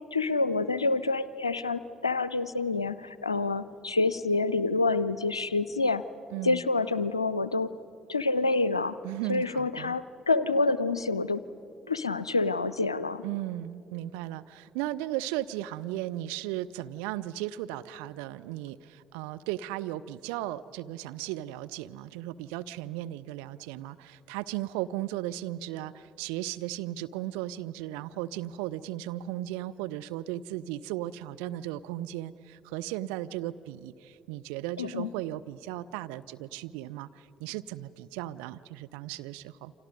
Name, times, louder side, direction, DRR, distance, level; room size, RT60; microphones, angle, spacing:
voice 1, 0.0-6.0 6.4-7.7 8.1-9.0 9.3-11.4 11.9-13.2 34.8-35.1, left 3 dB, 90° left, 16 dB, 0.5 m, -27 dB
voice 2, 9.0-10.0 13.2-39.7, right 14 dB, 70° right, 11 dB, 0.6 m, -36 dB
29.5 x 26.0 x 5.2 m, 2.8 s
figure-of-eight pair, 45°, 3 cm